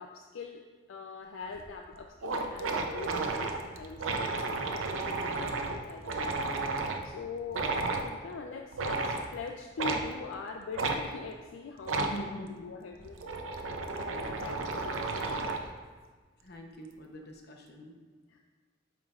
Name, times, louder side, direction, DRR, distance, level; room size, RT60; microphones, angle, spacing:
voice 1, 0.0-6.4 7.0-12.3 12.6-13.3 14.1-15.5 18.3-18.4, left 4 dB, 75° left, 3 dB, 0.4 m, -43 dB
sound 1, 1.6-1.7 1.9-2.0 2.2-7.0 7.5-8.1 8.7-9.3 9.8-10.0 10.8-11.0 11.8-12.2 12.9-15.7, right 3 dB, 90° right, 0.6 m, -33 dB
voice 2, 12.0-12.7 16.4-17.9, equal, 55° left, 2 dB, 0.8 m, -44 dB
8.7 x 5.1 x 2.4 m, 1.4 s
head